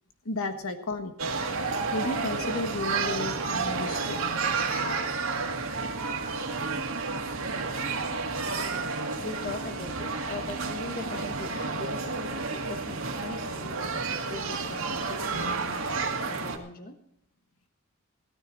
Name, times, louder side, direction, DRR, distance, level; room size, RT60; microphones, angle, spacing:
voice 1, 0.2-1.2 1.9-4.2, left 2 dB, 70° left, 8 dB, 1.4 m, -33 dB
sound 1, 1.2-16.6, right 4 dB, 65° right, 2.1 m, -31 dB
voice 2, 9.2-17.0, left 3 dB, 40° left, 7 dB, 1.3 m, -41 dB
16.5 x 13.5 x 4.0 m, 0.69 s
head